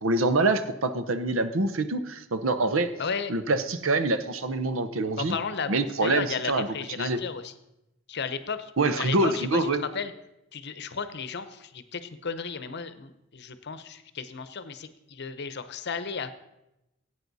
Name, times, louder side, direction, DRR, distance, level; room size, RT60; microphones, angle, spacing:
voice 1, 0.0-2.9 3.3-5.3 5.7-6.7 7.0-7.2 8.8-9.8, right 2 dB, 75° right, 11 dB, 0.9 m, -25 dB
voice 2, 3.0-3.3 5.2-7.5 8.1-10.1 10.5-16.3, left 5 dB, 55° left, 11 dB, 0.8 m, -34 dB
16.5 x 8.7 x 4.1 m, 0.90 s
head